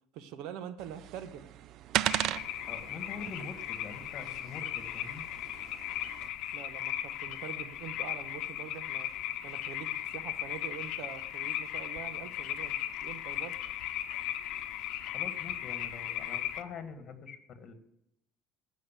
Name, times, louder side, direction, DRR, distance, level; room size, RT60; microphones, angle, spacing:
voice 1, 0.1-1.5 6.5-9.1 9.4-13.6, right 9 dB, 75° right, 11 dB, 1.1 m, -44 dB
sound 1, 0.8-6.3, right 13 dB, 60° right, 0.3 m, -37 dB
sound 2, 2.1-16.6, left 12 dB, 65° left, 0.9 m, -37 dB
voice 2, 2.7-5.3 15.0-17.7, left 5 dB, 40° left, 8 dB, 1.8 m, -45 dB
14.5 x 6.3 x 7.5 m, 0.81 s
cardioid pair, 120°, 0 cm